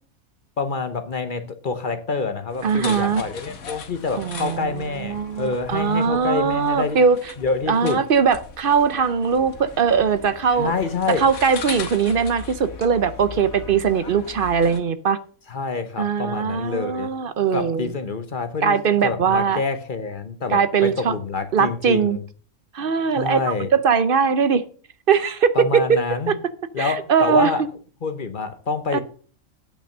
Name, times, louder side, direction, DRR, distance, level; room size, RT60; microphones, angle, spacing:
voice 1, 0.6-7.0 7.4-8.0 10.5-11.3 15.5-17.1 17.5-22.2 23.1-23.7 25.5-26.3 26.7-27.6 28.0-29.0, left 4 dB, 40° left, 0.9 m, -27 dB
sound 1, 2.5-14.8, left 5 dB, 80° left, 1.7 m, -39 dB
voice 2, 2.6-3.2 4.2-7.2 7.7-10.7 11.2-15.2 16.0-17.9 18.6-19.6 20.5-21.1 21.5-22.2 22.7-24.6 25.1-26.0 26.3-26.4 26.8-27.5 28.9-29.0, right 6 dB, 50° right, 0.7 m, -20 dB
8.7 x 6.1 x 6.5 m
omnidirectional pair, 1.5 m